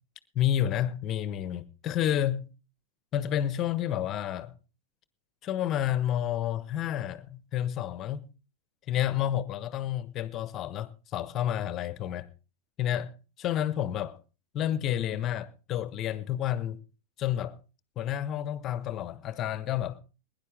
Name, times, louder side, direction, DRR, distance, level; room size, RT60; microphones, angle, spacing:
voice 1, 0.3-2.5 3.1-4.5 5.4-8.3 8.9-12.3 12.8-13.1 13.4-14.2 14.5-16.8 17.2-17.6 18.0-20.0, left 11 dB, 30° left, 1.1 m, -30 dB
21.0 x 11.0 x 3.5 m
figure-of-eight pair, 90°, 0 cm